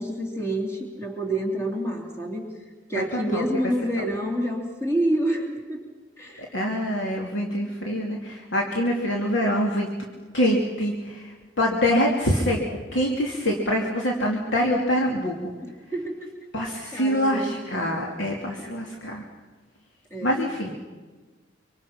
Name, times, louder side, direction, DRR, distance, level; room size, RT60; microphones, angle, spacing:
voice 1, 0.0-2.5 2.9-5.8 6.2-6.5 15.6-16.3 16.9-17.5 20.1-20.3, right 1 dB, 15° left, 1 dB, 3.1 m, -28 dB
voice 2, 6.4-9.9 10.3-15.4 16.5-19.2 20.2-20.7, equal, 80° left, -1 dB, 2.7 m, -25 dB
25.5 x 25.5 x 5.9 m, 1.3 s
head